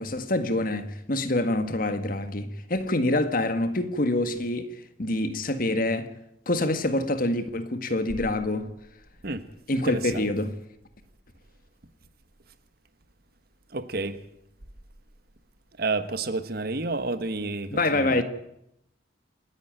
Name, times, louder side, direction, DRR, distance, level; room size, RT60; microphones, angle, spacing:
voice 1, 0.0-4.7 5.0-6.1 6.5-8.7 9.7-10.5 17.7-18.2, left 2 dB, 50° left, 1.8 m, -26 dB
voice 2, 9.8-10.2 13.7-14.2 15.8-18.2, right 3 dB, 55° right, 1.4 m, -30 dB
28.5 x 10.5 x 9.1 m
head